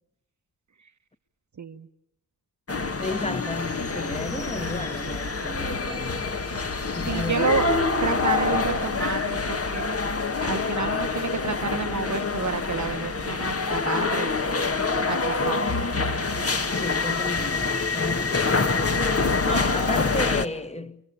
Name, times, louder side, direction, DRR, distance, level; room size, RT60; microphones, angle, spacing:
voice 1, 1.6-1.9 7.0-9.9 10.4-15.6, right 5 dB, 40° right, 1.3 m, -30 dB
sound 1, 2.7-20.5, left 4 dB, 30° left, 1.6 m, -26 dB
voice 2, 3.0-6.4 6.9-7.6 16.7-18.7 19.5-21.0, left 2 dB, 15° left, 1.8 m, -33 dB
29.5 x 27.5 x 7.2 m
cardioid pair, 55°, 44 cm